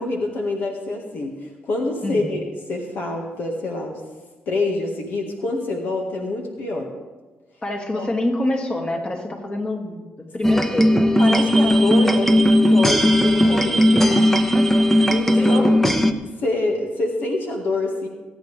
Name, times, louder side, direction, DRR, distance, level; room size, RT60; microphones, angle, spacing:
voice 1, 0.0-4.0 4.5-6.9 8.0-8.1 10.6-10.8 11.2-14.2 15.1-15.8 16.2-18.1, left 2 dB, 70° left, 1 dB, 1.8 m, -26 dB
voice 2, 7.6-10.1 10.3-10.9 13.9-14.2 14.5-14.7 15.0-15.6, left 1 dB, 30° left, 2 dB, 2.3 m, -26 dB
sound 1, 10.4-16.1, equal, 10° left, 0.9 m, -17 dB
22.5 x 9.1 x 3.4 m, 1.3 s
cardioid pair, 85°, 3 cm